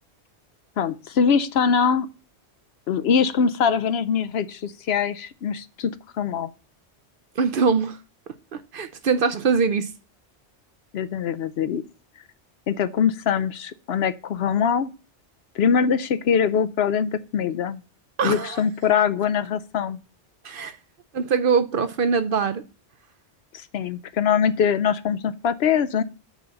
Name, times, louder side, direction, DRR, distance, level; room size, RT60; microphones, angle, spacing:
voice 1, 0.8-2.1 2.9-5.9 6.2-6.5 10.9-11.8 12.7-14.9 15.6-17.8 18.2-20.0 23.5-26.0, left 7 dB, 65° left, 0.8 m, -23 dB
voice 2, 7.4-8.0 8.5-9.9 18.2-18.6 20.4-20.7 21.1-22.6, right 5 dB, 60° right, 0.7 m, -22 dB
6.1 x 5.2 x 6.9 m
omnidirectional pair, 1.2 m